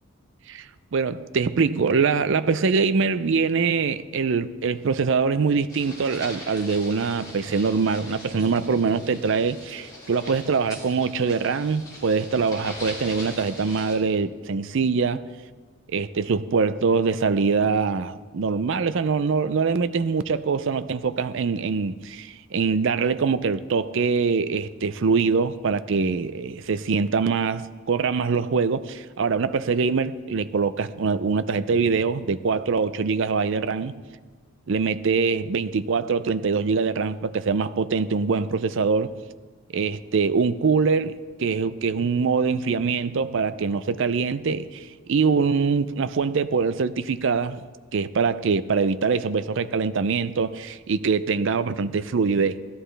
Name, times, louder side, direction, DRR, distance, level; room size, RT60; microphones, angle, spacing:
voice 1, 0.9-15.2 15.9-34.0 34.7-39.1 39.7-47.6 47.9-52.6, right 5 dB, 55° right, 0.4 m, -23 dB
sound 1, 5.7-13.9, left 1 dB, 15° left, 3.1 m, -41 dB
16.5 x 13.0 x 3.3 m
head